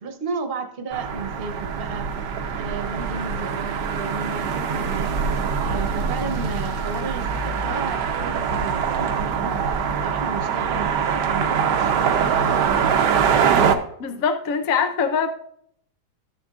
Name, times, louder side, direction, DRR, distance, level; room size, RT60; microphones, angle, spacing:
voice 1, 0.0-2.1 2.6-12.9, right 4 dB, 35° right, 6 dB, 1.1 m, -33 dB
sound 1, 0.9-13.8, right 6 dB, 75° right, 1.4 m, -23 dB
voice 2, 14.0-15.3, left 6 dB, 55° left, 6 dB, 1.2 m, -23 dB
13.5 x 7.1 x 2.5 m, 0.66 s
omnidirectional pair, 1.9 m